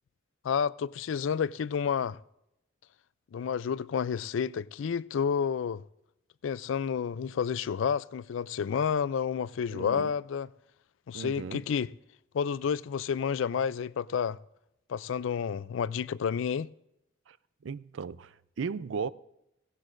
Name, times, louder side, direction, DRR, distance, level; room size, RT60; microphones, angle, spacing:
voice 1, 0.4-2.2 3.3-5.8 6.4-10.5 11.1-11.9 12.3-14.4 14.9-16.7, left 7 dB, 80° left, 0.4 m, -30 dB
voice 2, 9.7-10.1 11.1-11.6 17.3-17.4 17.6-19.1, right 5 dB, 75° right, 0.4 m, -36 dB
17.0 x 16.5 x 2.5 m
head